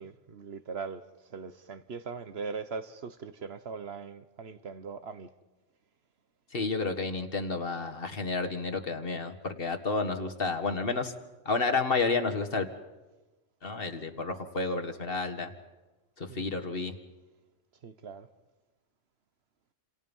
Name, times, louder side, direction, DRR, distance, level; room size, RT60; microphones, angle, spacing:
voice 1, 0.0-5.3 16.3-16.6 17.8-18.3, right 5 dB, 60° right, 1.2 m, -40 dB
voice 2, 6.5-11.1 11.5-12.7 13.6-15.5 16.2-17.0, left 3 dB, 50° left, 1.9 m, -31 dB
29.5 x 27.5 x 5.5 m
omnidirectional pair, 1.3 m